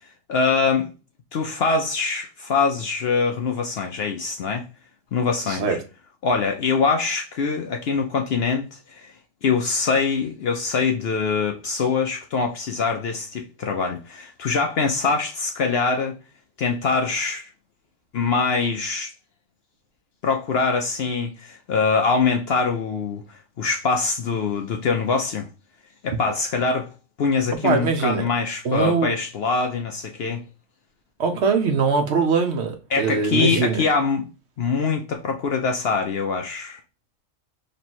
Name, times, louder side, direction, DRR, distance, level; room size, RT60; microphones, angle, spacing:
voice 1, 0.3-0.9 1.3-4.7 5.1-5.8 6.2-9.1 9.4-16.2 16.6-17.5 18.1-19.1 20.2-25.5 26.0-26.9 27.2-30.4 32.9-34.3 34.6-36.8, left 4 dB, 60° left, 0.7 m, -23 dB
voice 2, 5.5-5.8 27.6-28.2 28.6-29.1 31.2-33.8, right 5 dB, 60° right, 0.9 m, -22 dB
3.2 x 3.0 x 4.2 m
omnidirectional pair, 1.4 m